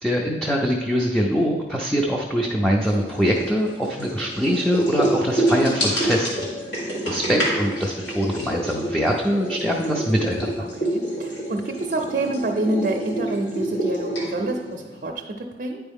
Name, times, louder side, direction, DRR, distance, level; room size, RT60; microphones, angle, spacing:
voice 1, 0.0-6.5 7.1-10.7, equal, 5° left, -1 dB, 0.4 m, -23 dB
sound 1, 2.8-15.0, right 1 dB, 75° left, 1.8 m, -27 dB
voice 2, 10.8-15.8, right 2 dB, 50° right, 2 dB, 0.5 m, -27 dB
9.3 x 4.5 x 3.5 m, 1.4 s
head